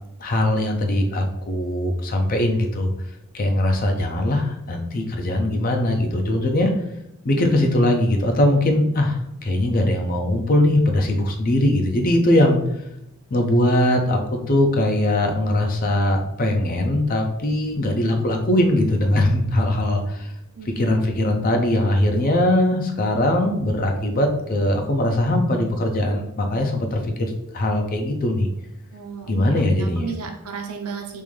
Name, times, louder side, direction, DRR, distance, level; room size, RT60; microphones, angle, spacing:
voice 1, 0.2-2.9 3.3-6.7 7.2-12.6 13.3-20.3 20.7-28.5 29.3-30.1, left 1 dB, 40° left, 3 dB, 0.5 m, -21 dB
voice 2, 20.6-21.0 28.9-31.2, right 5 dB, 85° right, 3 dB, 0.6 m, -34 dB
3.6 x 2.6 x 3.2 m, 0.82 s
head